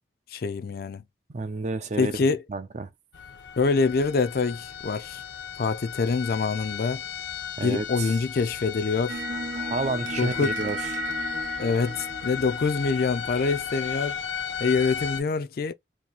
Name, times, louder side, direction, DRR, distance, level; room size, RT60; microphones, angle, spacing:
voice 1, 0.3-1.0 2.0-2.4 3.6-5.2 5.6-7.0 7.6-9.2 10.2-10.5 11.6-14.2 14.6-15.7, left 4 dB, 55° left, 0.4 m, -25 dB
voice 2, 1.3-2.9 7.6-8.2 9.6-10.8, right 3 dB, 40° right, 0.4 m, -31 dB
sound 1, 3.1-15.2, left 7 dB, 85° left, 0.7 m, -35 dB
sound 2, 9.1-13.4, right 4 dB, 85° right, 0.6 m, -36 dB
2.8 x 2.6 x 4.0 m
head